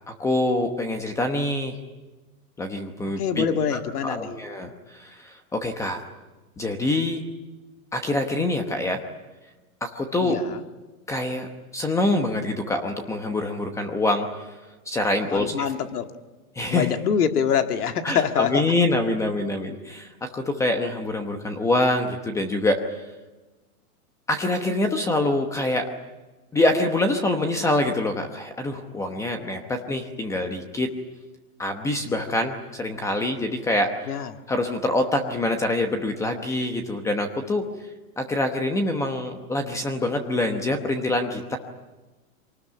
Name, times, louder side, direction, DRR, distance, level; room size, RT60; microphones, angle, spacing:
voice 1, 0.1-1.7 2.6-3.5 4.0-6.0 6.6-7.2 7.9-9.0 9.8-10.5 11.1-11.5 11.7-14.3 14.9-15.6 16.6-16.9 18.0-20.1 20.3-22.8 24.3-25.9 26.5-30.9 31.6-34.1 34.5-37.6 38.2-41.6, left 2 dB, 5° left, 6 dB, 0.9 m, -25 dB
voice 2, 3.2-4.3 10.2-10.6 15.2-16.1 16.6-18.7 34.1-34.3, left 8 dB, 80° left, 7 dB, 2.2 m, -25 dB
24.5 x 19.0 x 9.6 m, 1.2 s
hypercardioid pair, 160°, 45 cm